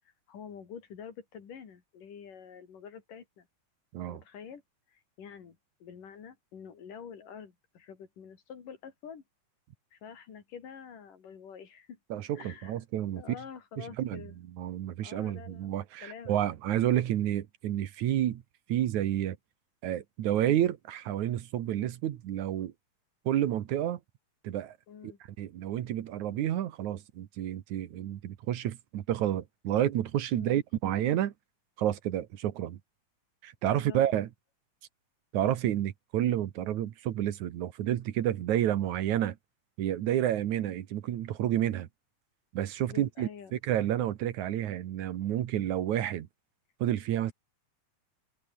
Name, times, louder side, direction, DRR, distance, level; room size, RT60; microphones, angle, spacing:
voice 1, 0.3-3.5 4.1-4.6 4.9-9.2 9.9-12.0 12.3-12.8 13.1-14.4 15.0-16.4 24.9-25.2 30.3-30.6 33.6-34.0 42.9-43.6, left 7 dB, 85° left, 4.8 m, -47 dB
voice 2, 12.1-13.2 13.8-14.2 14.6-18.4 18.7-19.4 19.8-22.7 23.3-24.0 24.4-24.8 25.4-31.3 31.8-32.8 33.4-34.3 35.3-39.4 39.8-41.9 42.5-46.3 46.8-47.3, right 12 dB, 70° right, 2.6 m, -30 dB
omnidirectional pair, 3.6 m